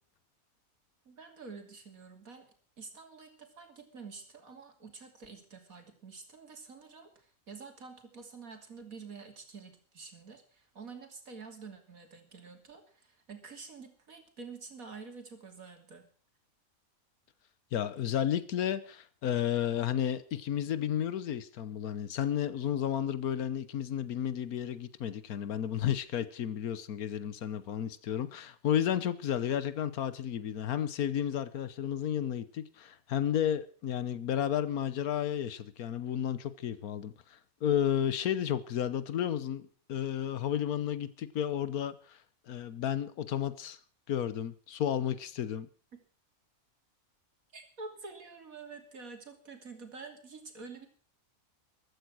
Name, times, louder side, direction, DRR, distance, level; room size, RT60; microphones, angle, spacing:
voice 1, 1.0-2.5 2.8-16.1 47.5-50.9, right 4 dB, 70° right, 3.3 m, -48 dB
voice 2, 17.7-42.2 42.5-43.8 44.1-45.7, left 10 dB, 90° left, 1.4 m, -32 dB
15.0 x 13.0 x 6.2 m
omnidirectional pair, 1.5 m